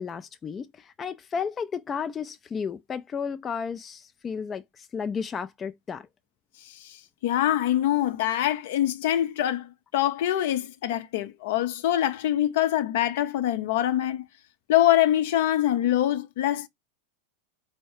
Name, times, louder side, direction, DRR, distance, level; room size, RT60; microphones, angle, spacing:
voice 1, 0.0-6.1, left 6 dB, 25° left, 0.4 m, -33 dB
voice 2, 6.6-7.0 7.2-14.2 14.7-16.7, left 12 dB, 65° left, 0.6 m, -24 dB
4.6 x 2.1 x 4.4 m
hypercardioid pair, 100°, 0 cm